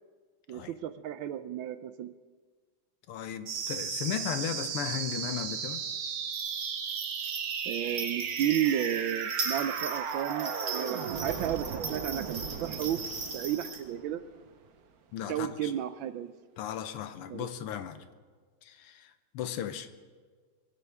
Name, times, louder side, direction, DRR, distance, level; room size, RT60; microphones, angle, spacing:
voice 1, 0.5-2.1 7.6-14.2 15.3-16.3 17.3-17.5, right 11 dB, 75° right, 13 dB, 1.2 m, -33 dB
voice 2, 3.1-5.8 15.1-15.7 16.6-18.0 18.6-19.9, left 9 dB, 85° left, 10 dB, 1.8 m, -36 dB
sound 1, 3.5-14.5, right 7 dB, 55° right, 1.2 m, -35 dB
sound 2, 6.3-13.8, right 4 dB, 40° right, 1.9 m, -39 dB
22.5 x 16.5 x 3.5 m, 1.5 s
omnidirectional pair, 2.4 m